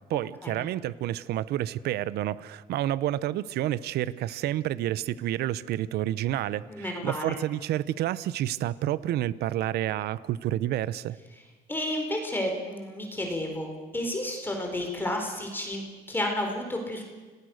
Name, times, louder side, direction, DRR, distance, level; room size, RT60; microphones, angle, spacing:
voice 1, 0.0-11.2, right 13 dB, 75° right, 19 dB, 0.8 m, -29 dB
voice 2, 6.7-7.3 11.7-17.0, left 1 dB, 10° left, 2 dB, 4.4 m, -31 dB
29.5 x 19.0 x 6.5 m, 1.3 s
cardioid pair, 110°, 17 cm